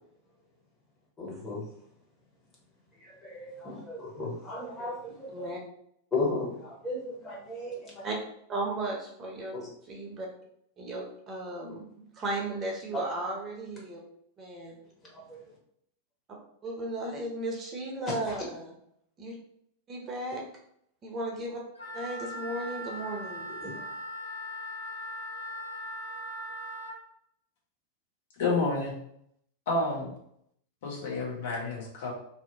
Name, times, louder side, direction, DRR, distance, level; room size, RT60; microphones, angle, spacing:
voice 1, 1.2-1.7 3.0-5.5 6.1-8.0 9.5-9.7 15.1-15.4 18.1-18.4 23.6-23.9, left 2 dB, 20° left, -5 dB, 1.1 m, -35 dB
voice 2, 8.5-9.6 9.9-10.3 10.8-14.0 14.4-14.8 16.6-18.7 19.2-19.3 19.9-20.4 21.0-21.6 21.9-23.5, right 1 dB, 25° right, -1 dB, 0.7 m, -35 dB
Wind instrument woodwind instrument, 21.7-27.0, equal, 90° left, 0.9 m, -39 dB
voice 3, 28.4-29.0 29.7-30.1 30.8-32.1, left 3 dB, 55° left, -4 dB, 0.9 m, -29 dB
2.7 x 2.1 x 2.7 m, 0.71 s
figure-of-eight pair, 90°, 0 cm